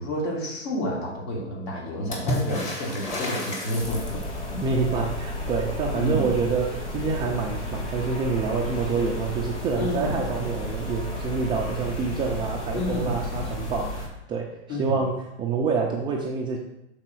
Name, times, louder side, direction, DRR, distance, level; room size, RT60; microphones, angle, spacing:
voice 1, 0.0-4.6 5.9-6.3 9.8-10.2 12.7-13.1 14.7-15.0, left 1 dB, 60° left, -3 dB, 3.1 m, -30 dB
Water / Splash splatter, 2.1-4.5 7.8-7.9 8.1-8.9 10.0-10.1, left 1 dB, 20° left, 1.6 m, -31 dB
sound 1, 3.8-14.1, left 1 dB, 75° left, 2.5 m, -33 dB
voice 2, 4.6-16.6, right 4 dB, 15° right, -1 dB, 0.4 m, -27 dB
6.5 x 4.1 x 6.0 m, 0.86 s
hypercardioid pair, 145°, 35 cm